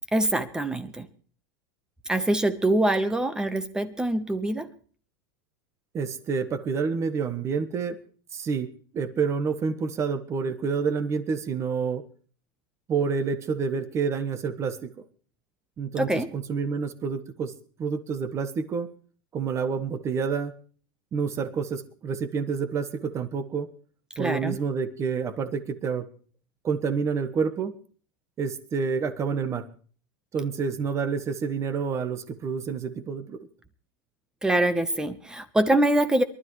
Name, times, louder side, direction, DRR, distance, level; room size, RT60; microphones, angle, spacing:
voice 1, 0.1-1.1 2.1-4.7 16.0-16.3 24.2-24.6 34.4-36.2, right 1 dB, 5° right, 12 dB, 1.0 m, -24 dB
voice 2, 5.9-8.0 8.3-8.7 8.9-12.0 12.9-14.9 15.8-17.5 17.8-18.9 19.3-20.5 21.1-23.7 24.2-26.0 26.6-27.7 28.4-29.7 30.3-33.4, right 5 dB, 25° right, 11 dB, 1.3 m, -28 dB
23.0 x 12.5 x 3.2 m, 0.42 s
supercardioid pair, 155°, 12 cm